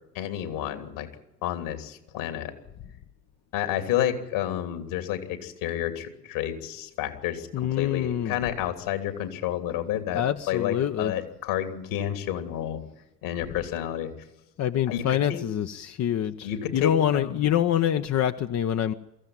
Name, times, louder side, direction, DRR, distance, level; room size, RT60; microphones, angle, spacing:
voice 1, 0.1-1.1 1.4-2.5 3.5-12.8 13.2-14.1 14.9-15.4 16.4-17.4, left 11 dB, 60° left, 8 dB, 3.2 m, -30 dB
voice 2, 7.5-8.3 10.1-11.1 14.6-18.9, left 10 dB, 35° left, 9 dB, 0.9 m, -25 dB
23.0 x 15.5 x 9.2 m, 0.94 s
figure-of-eight pair, 65°, 48 cm